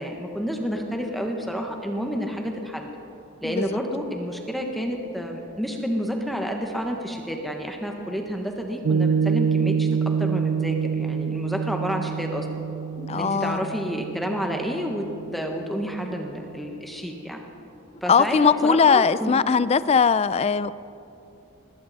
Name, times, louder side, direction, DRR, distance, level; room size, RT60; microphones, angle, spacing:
voice 1, 0.0-2.9 3.4-12.6 13.1-15.1 15.3-17.4 18.0-19.3, equal, ahead, 2 dB, 1.2 m, -29 dB
voice 2, 3.4-3.8 13.0-13.7 18.1-20.7, left 6 dB, 30° left, 16 dB, 0.3 m, -20 dB
Piano, 8.8-15.5, right 6 dB, 60° right, 0.3 m, -26 dB
20.0 x 17.0 x 4.1 m, 2.8 s
head